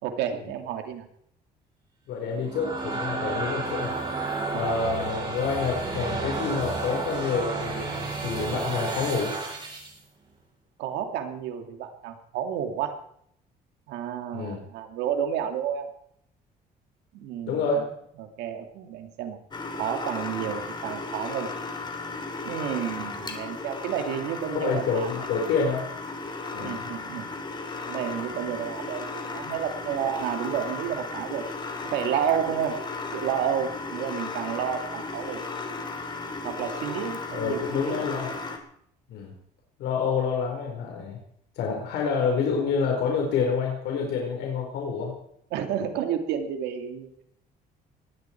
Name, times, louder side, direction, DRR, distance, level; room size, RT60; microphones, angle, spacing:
voice 1, 0.0-1.0 4.5-4.7 10.8-13.0 13.9-15.9 17.1-17.8 18.2-19.4 19.8-21.5 22.4-25.3 26.5-27.3 27.8-31.4 31.9-32.8 33.1-35.4 36.4-38.0 45.5-47.2, right 9 dB, 90° right, 5 dB, 2.5 m, -31 dB
voice 2, 2.1-4.0 4.5-9.3 14.3-14.6 17.5-17.8 24.5-25.9 26.5-26.8 37.3-38.3 39.1-39.3 39.8-41.2 41.6-45.1, left 5 dB, 80° left, 0 dB, 4.6 m, -28 dB
sound 1, 2.2-10.0, right 3 dB, 30° right, 7.9 m, -31 dB
sound 2, 19.5-38.6, left 3 dB, 25° left, 3.3 m, -35 dB
20.0 x 15.5 x 4.6 m, 0.70 s
cardioid pair, 110°, 17 cm